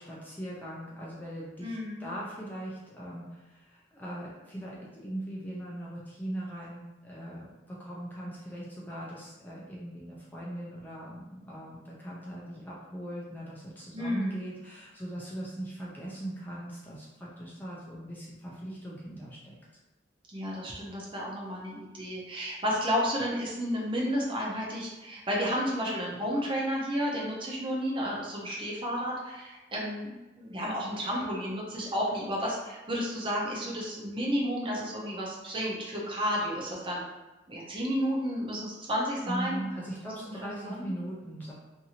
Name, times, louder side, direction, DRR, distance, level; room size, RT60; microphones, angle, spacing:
voice 1, 0.0-19.6 39.2-41.5, right 1 dB, 10° left, -6 dB, 0.4 m, -40 dB
voice 2, 1.6-2.1 13.9-14.4 20.3-37.0 37.5-39.6 40.2-40.9, equal, 30° right, -4 dB, 0.6 m, -32 dB
2.6 x 2.6 x 2.8 m, 1.1 s
head